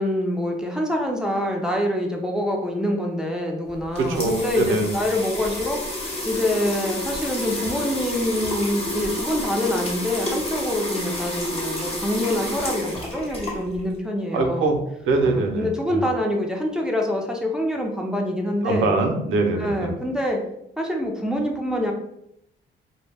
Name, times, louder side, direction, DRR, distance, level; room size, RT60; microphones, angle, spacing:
voice 1, 0.0-14.7 15.2-18.9 19.5-20.4 20.8-21.9, left 1 dB, 5° right, 0 dB, 0.5 m, -25 dB
sound 1, 3.7-14.0, left 1 dB, 30° left, 0.8 m, -30 dB
voice 2, 4.0-4.9 14.3-16.1 18.6-19.9, right 3 dB, 80° right, 4 dB, 0.5 m, -23 dB
2.2 x 2.0 x 3.3 m, 0.78 s
cardioid pair, 90°, 20 cm